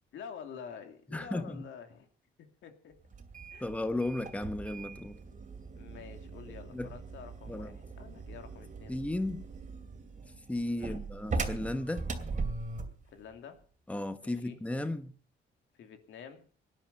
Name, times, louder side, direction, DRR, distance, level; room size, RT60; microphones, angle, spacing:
voice 1, 0.1-2.1 2.4-3.0 3.5-3.6 5.7-9.0 10.8-11.0 13.0-13.6 14.2-14.6 15.8-16.5, left 7 dB, 75° left, 2.6 m, -48 dB
voice 2, 1.1-1.6 3.6-5.2 6.7-6.9 7.5-7.8 8.9-9.4 10.5-12.1 13.9-15.1, left 1 dB, 5° left, 1.1 m, -34 dB
sound 1, 3.1-13.0, right 3 dB, 40° right, 2.7 m, -40 dB
18.0 x 10.5 x 5.8 m
cardioid pair, 90°, 20 cm